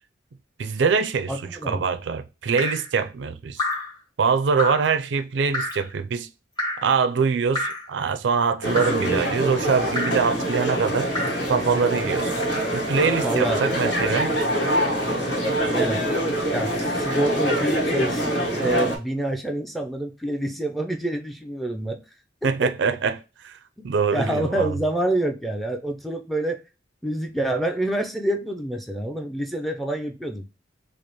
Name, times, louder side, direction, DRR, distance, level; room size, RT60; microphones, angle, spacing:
voice 1, 0.6-1.3 1.7-3.6 4.2-6.3 6.8-11.1 11.5-12.3 12.7-14.3 22.4-23.6 23.8-24.7, right 5 dB, 75° right, 0.4 m, -23 dB
voice 2, 1.3-1.9 13.2-13.6 15.7-16.0 16.5-22.0 22.4-22.7 24.1-26.6 27.0-30.5, right 1 dB, ahead, 0.4 m, -27 dB
Drip, 2.6-2.9 3.6-3.9 4.6-4.9 5.5-5.9 6.6-6.9 7.5-7.9 8.8-9.1 10.0-10.3 11.1-11.5 12.4-12.7 13.6-13.8, left 2 dB, 25° left, 1.0 m, -29 dB
sound 1, 8.6-19.0, equal, 70° left, 1.3 m, -25 dB
5.0 x 2.0 x 3.0 m
head